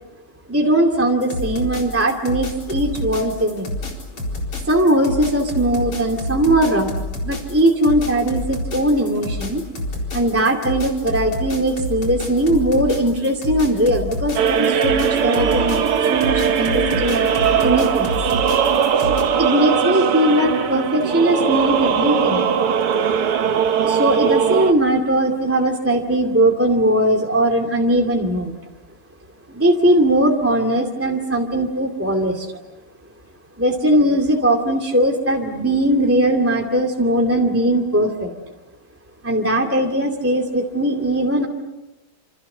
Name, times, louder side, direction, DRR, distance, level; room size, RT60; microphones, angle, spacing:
voice 1, 0.5-3.7 4.6-6.9 7.2-9.6 10.1-18.2 19.4-22.4 23.8-28.5 29.5-32.6 33.6-38.3 39.2-41.5, right 1 dB, 5° right, 1 dB, 2.3 m, -19 dB
sound 1, 1.2-19.2, left 2 dB, 90° left, 5.3 m, -28 dB
sound 2, 14.4-24.7, right 7 dB, 85° right, 2.3 m, -19 dB
29.0 x 28.0 x 6.8 m, 1.0 s
omnidirectional pair, 2.4 m